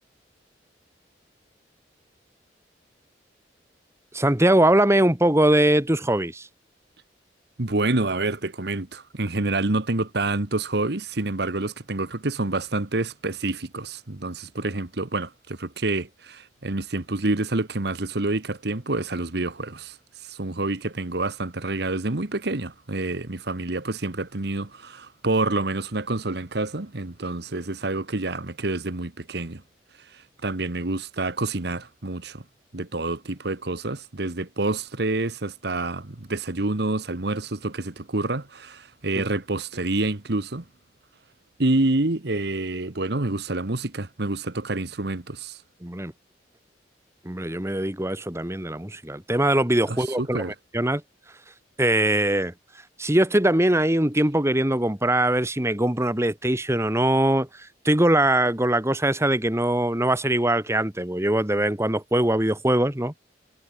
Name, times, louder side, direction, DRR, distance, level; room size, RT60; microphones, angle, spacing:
voice 1, 4.1-6.5 45.8-46.1 47.3-50.4 50.7-51.0 51.8-52.5 53.0-63.1, right 1 dB, 15° right, 1.9 m, -22 dB
voice 2, 7.6-20.0 20.2-29.6 30.1-32.4 32.7-40.6 41.6-45.6 49.9-50.5, right 2 dB, 65° right, 1.5 m, -28 dB
head